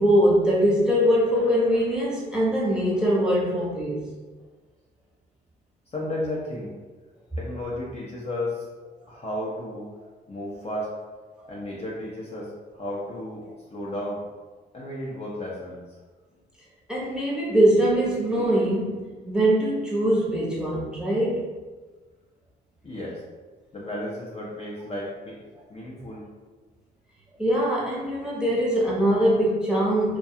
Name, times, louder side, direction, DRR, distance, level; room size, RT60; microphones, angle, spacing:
voice 1, 0.0-4.0 11.4-11.5 16.9-21.5 27.4-30.2, equal, 5° right, -6 dB, 0.8 m, -22 dB
voice 2, 5.9-6.7 7.4-8.7 9.1-9.9 10.3-10.9 11.5-13.4 13.7-14.2 14.7-15.8 22.8-23.2 23.7-25.4 25.7-26.2, left 1 dB, 30° left, -5 dB, 0.6 m, -33 dB
2.3 x 2.2 x 2.7 m, 1.3 s
cardioid pair, 90°, 20 cm